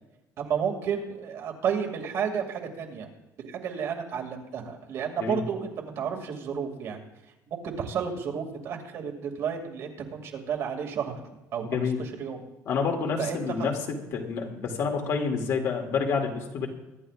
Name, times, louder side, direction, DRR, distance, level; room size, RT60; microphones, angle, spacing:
voice 1, 0.4-3.1 3.4-7.0 7.5-11.2 11.5-11.9 12.2-12.4 13.2-13.4, right 7 dB, 55° right, 2 dB, 2.4 m, -31 dB
voice 2, 11.6-12.0 12.7-16.7, left 5 dB, 55° left, 1 dB, 2.5 m, -28 dB
23.5 x 11.5 x 2.5 m, 1.0 s
cardioid pair, 155°, 6 cm